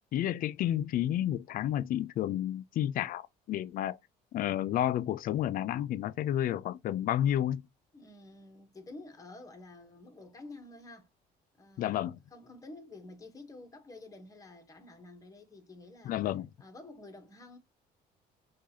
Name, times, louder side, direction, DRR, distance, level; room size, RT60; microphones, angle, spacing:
voice 1, 0.1-4.0 4.3-7.6 11.8-12.2 16.1-16.5, left 11 dB, 55° left, 0.4 m, -31 dB
voice 2, 7.9-11.1 11.6-12.0 12.3-16.2 16.6-17.6, left 2 dB, 20° left, 1.1 m, -50 dB
4.7 x 2.4 x 2.8 m
cardioid pair, 110°, 17 cm